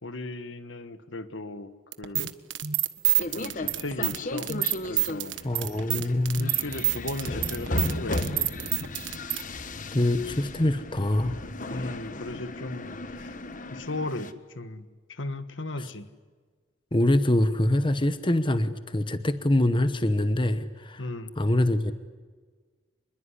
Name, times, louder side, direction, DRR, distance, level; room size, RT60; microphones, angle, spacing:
voice 1, 0.0-2.3 3.3-4.5 4.9-5.4 6.4-8.5 11.7-13.4 13.7-16.1 21.0-21.3, left 2 dB, 65° left, 11 dB, 1.5 m, -36 dB
sound 1, 1.9-9.4, right 15 dB, 65° right, 1.4 m, -27 dB
sound 2, 3.2-14.3, left 2 dB, 40° left, 1.4 m, -35 dB
voice 2, 5.4-6.6 9.9-11.4 15.8-15.9 16.9-21.1 21.4-21.9, left 1 dB, 25° left, 11 dB, 1.0 m, -24 dB
27.0 x 21.5 x 9.9 m, 1.5 s
head